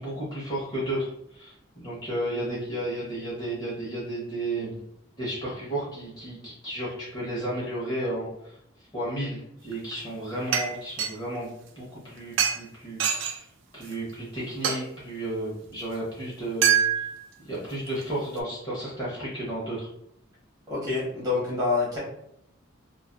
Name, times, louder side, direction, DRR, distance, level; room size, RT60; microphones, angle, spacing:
voice 1, 0.0-4.8 5.2-8.6 8.9-11.5 11.8-13.5 13.7-16.7 17.4-19.9, right 1 dB, 20° left, -7 dB, 0.7 m, -33 dB
sound 1, 9.7-10.0 10.5-11.1 12.4-12.6 13.0-13.4 13.9-14.0 14.6-14.8 16.6-17.3 17.9-18.0, right 8 dB, 70° right, 0.3 m, -24 dB
voice 2, 20.7-22.0, left 4 dB, 20° right, -7 dB, 0.9 m, -26 dB
2.4 x 2.3 x 2.2 m, 0.75 s
head